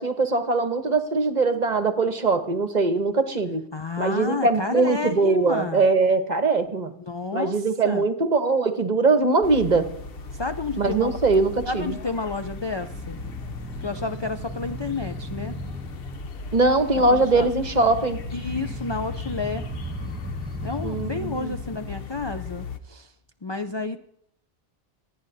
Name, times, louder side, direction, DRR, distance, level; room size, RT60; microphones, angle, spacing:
voice 1, 0.0-3.6 4.0-6.9 7.3-9.9 10.8-12.0 16.5-18.2 20.8-21.5, right 3 dB, 40° right, 8 dB, 1.1 m, -21 dB
voice 2, 3.7-5.8 7.1-8.0 10.3-11.2 11.7-13.2 13.8-15.5 17.1-17.5 18.3-19.6 20.6-23.1 23.4-24.0, left 3 dB, 40° left, 8 dB, 0.3 m, -30 dB
sound 1, 9.4-22.8, left 3 dB, 60° left, 1.0 m, -37 dB
sound 2, 12.5-16.4 17.7-21.8, right 1 dB, 10° right, 2.1 m, -37 dB
26.5 x 9.4 x 2.7 m, 0.73 s
omnidirectional pair, 1.2 m